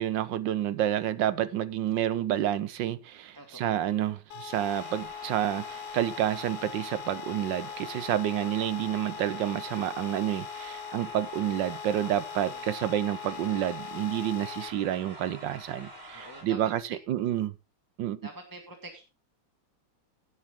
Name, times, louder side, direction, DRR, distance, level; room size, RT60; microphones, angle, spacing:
voice 1, 0.0-17.5 18.0-18.2, right 11 dB, 70° right, 1.3 m, -29 dB
voice 2, 3.3-3.8 12.4-12.6 16.1-16.6 18.2-19.0, right 1 dB, 10° right, 1.6 m, -46 dB
sound 1, 4.3-14.7, left 8 dB, 85° left, 1.7 m, -41 dB
sound 2, 4.7-16.4, equal, 30° right, 5.8 m, -46 dB
16.5 x 7.6 x 3.6 m
omnidirectional pair, 2.2 m